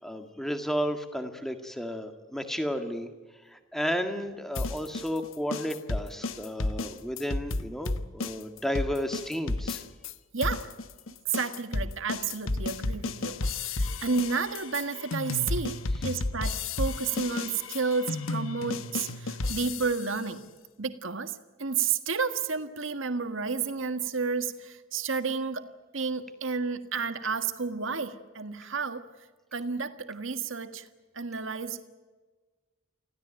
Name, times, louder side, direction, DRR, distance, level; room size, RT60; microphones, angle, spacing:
voice 1, 0.0-3.1 3.4-9.8, equal, ahead, 1.9 m, -33 dB
sound 1, 4.6-10.1 10.4-20.2, left 3 dB, 80° left, 1.1 m, -32 dB
voice 2, 10.3-10.7 11.3-13.4 13.6-20.4 20.8-25.7 25.9-29.0 29.5-30.8 31.1-31.8, right 5 dB, 70° right, 1.6 m, -31 dB
26.0 x 16.5 x 9.0 m
head